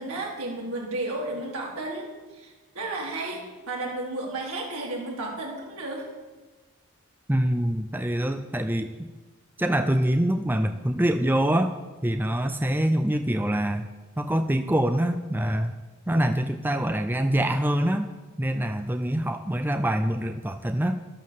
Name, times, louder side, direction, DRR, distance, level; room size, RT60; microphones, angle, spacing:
voice 1, 0.0-6.1, right 2 dB, 75° right, -2 dB, 4.5 m, -33 dB
voice 2, 7.3-9.1 9.6-11.7 12.0-13.9 14.2-15.7 16.1-18.1 18.4-21.0, right 1 dB, 10° right, 8 dB, 0.5 m, -25 dB
12.5 x 12.0 x 7.4 m, 1.3 s
head